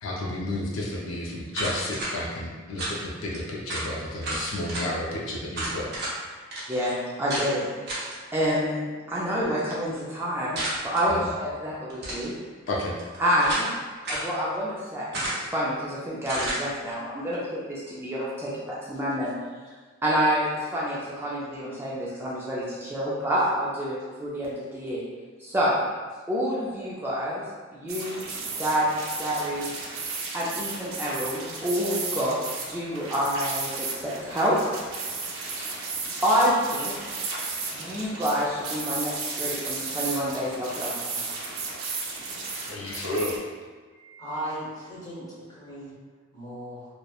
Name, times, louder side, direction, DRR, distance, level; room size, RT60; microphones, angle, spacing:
voice 1, 0.0-5.9 11.1-11.3 12.7-12.9 42.6-43.3, left 1 dB, 75° left, -3 dB, 0.4 m, -31 dB
sound 1, 1.5-2.1 2.8-3.0 3.3-3.4 3.7-3.9 4.2-4.9 5.5-6.1 6.5-6.6 7.3-7.5 7.9-8.2 10.6-11.0 11.9-12.3 13.0-13.7 14.0-14.3 15.1-15.6 16.3-16.6, right 1 dB, 55° right, 0.8 m, -31 dB
voice 2, 6.7-12.4 13.2-13.7 14.1-19.3 20.0-25.0 25.4-25.8 26.3-27.4 27.7-28.2 28.6-28.9 29.2-29.7 30.3-32.4 32.7-34.6 35.6-35.7 36.2-37.0 37.7-41.3 43.9-44.2, equal, 10° right, -7 dB, 0.3 m, -28 dB
sound 2, 27.9-43.4, right 4 dB, 85° right, 0.5 m, -34 dB
voice 3, 44.2-45.9 46.3-46.9, right 1 dB, 20° left, -10 dB, 0.9 m, -37 dB
2.8 x 2.0 x 2.2 m, 1.5 s
head